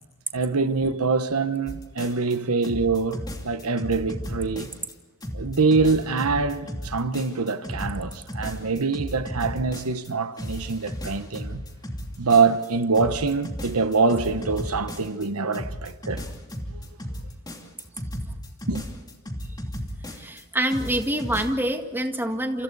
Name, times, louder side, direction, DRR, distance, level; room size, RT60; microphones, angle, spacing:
voice 1, 0.3-4.7 5.3-11.6 12.2-16.2 16.7-16.8 18.7-18.8, right 4 dB, 85° right, 1.1 m, -24 dB
sound 1, 1.7-2.4 2.6-4.9 5.2-10.1 10.4-12.7 13.0-15.3 15.5-20.4 20.7-21.5, equal, 20° left, 2.7 m, -34 dB
voice 2, 20.1-22.6, right 1 dB, 10° right, 1.9 m, -26 dB
29.5 x 28.0 x 4.2 m
head